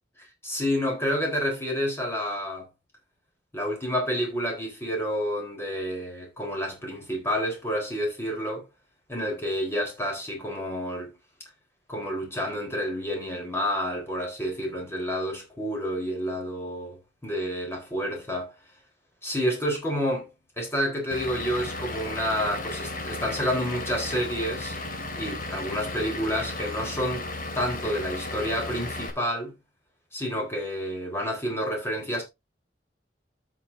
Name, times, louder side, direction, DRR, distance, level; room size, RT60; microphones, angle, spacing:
voice 1, 0.4-2.7 3.5-8.7 9.1-11.1 11.9-18.5 19.2-20.3 20.6-24.8 25.2-27.3 27.5-29.5 30.1-32.2, equal, 15° left, 3.9 m, -29 dB
Vehicle / Engine, 21.1-29.1, left 2 dB, 50° left, 2.3 m, -34 dB
14.5 x 6.2 x 2.6 m
head